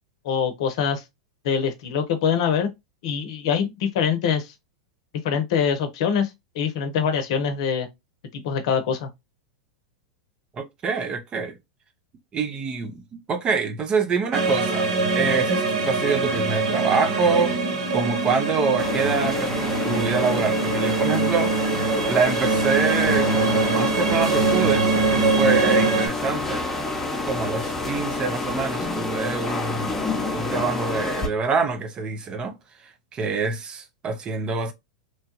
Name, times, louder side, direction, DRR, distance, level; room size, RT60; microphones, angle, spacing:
voice 1, 0.2-1.0 1.4-2.7 3.0-4.5 5.2-6.3 6.5-7.9 8.3-9.1, left 7 dB, 60° left, 0.7 m, -24 dB
voice 2, 10.5-11.6 12.3-13.0 13.3-17.5 17.9-26.6 27.3-30.1 30.3-32.6 33.1-34.7, right 4 dB, 30° right, 0.6 m, -26 dB
sound 1, 14.3-26.1, right 3 dB, 70° right, 0.9 m, -23 dB
sound 2, 18.8-31.3, left 3 dB, 10° left, 0.8 m, -29 dB
3.0 x 2.2 x 2.8 m
hypercardioid pair, 100°, 3 cm